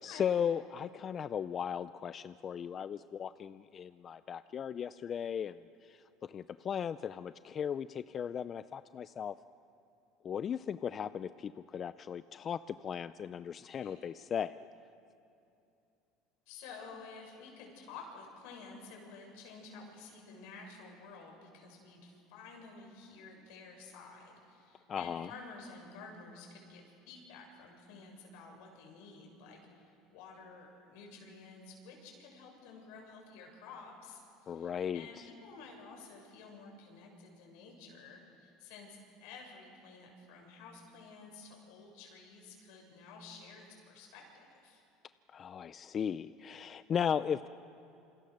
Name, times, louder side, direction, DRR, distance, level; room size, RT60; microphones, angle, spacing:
voice 1, 0.0-9.4 10.2-14.6 24.9-25.3 34.5-35.2 45.3-47.5, left 8 dB, 35° left, 14 dB, 0.5 m, -37 dB
voice 2, 13.5-14.0 16.5-44.8, left 4 dB, 75° left, 2 dB, 7.3 m, -52 dB
27.5 x 26.5 x 6.7 m, 2.7 s
supercardioid pair, 110°, 0 cm